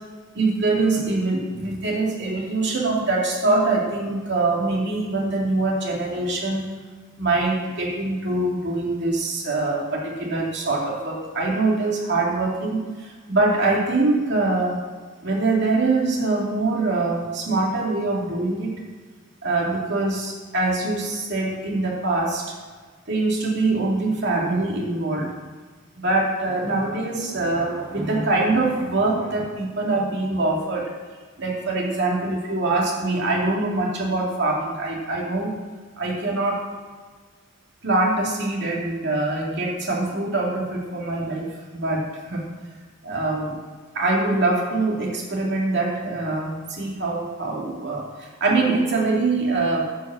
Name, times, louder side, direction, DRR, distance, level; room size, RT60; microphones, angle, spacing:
voice 1, 0.3-6.6 7.2-14.8 15.2-18.7 19.4-22.5 23.1-25.3 26.0-30.9 31.4-35.6 36.0-36.7 37.8-42.4 43.0-43.6 43.9-49.8, right 2 dB, 55° right, -2 dB, 2.4 m, -24 dB
9.8 x 5.3 x 7.6 m, 1.5 s
head